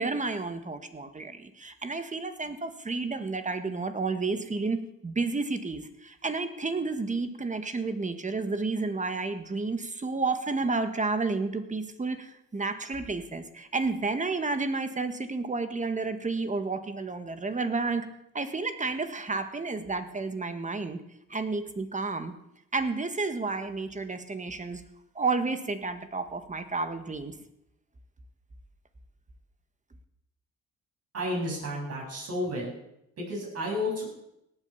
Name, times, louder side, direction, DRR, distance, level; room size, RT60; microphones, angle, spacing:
voice 1, 0.0-4.8 5.0-18.0 18.3-21.0 21.3-22.3 22.7-24.8 25.2-27.3, right 3 dB, 25° right, 9 dB, 1.8 m, -31 dB
voice 2, 31.1-32.7 33.2-34.0, left 1 dB, 55° right, -1 dB, 7.7 m, -31 dB
17.5 x 8.8 x 7.2 m, 0.83 s
cardioid pair, 90°, 30 cm